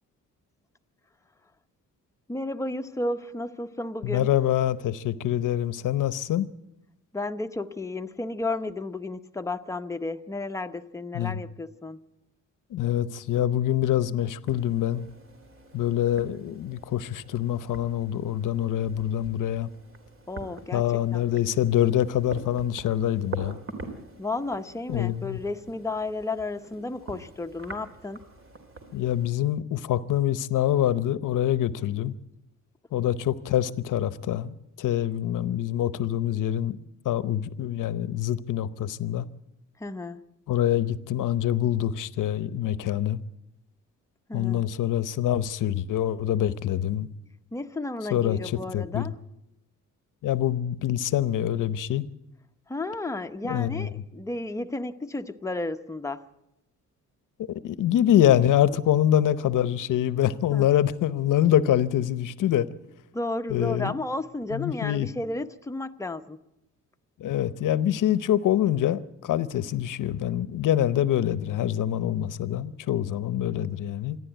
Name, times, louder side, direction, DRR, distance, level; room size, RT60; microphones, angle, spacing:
voice 1, 2.3-4.3 7.1-12.0 20.3-21.4 24.2-28.2 39.8-40.3 44.3-44.7 47.5-49.1 52.7-56.2 60.5-60.7 63.1-66.4, left 2 dB, 10° left, 0.8 m, -33 dB
voice 2, 4.0-6.5 11.1-11.4 12.7-15.1 15.7-19.7 20.7-23.6 24.9-25.4 28.9-32.2 32.9-36.8 37.0-39.3 40.5-43.2 44.3-47.1 48.1-49.1 50.2-52.1 53.4-53.9 57.5-62.7 63.5-63.9 64.5-65.1 67.2-74.2, left 11 dB, 85° left, 0.8 m, -25 dB
sound 1, 14.5-29.3, right 3 dB, 45° right, 2.9 m, -45 dB
27.0 x 11.0 x 9.1 m
wide cardioid pair, 140°, 30 cm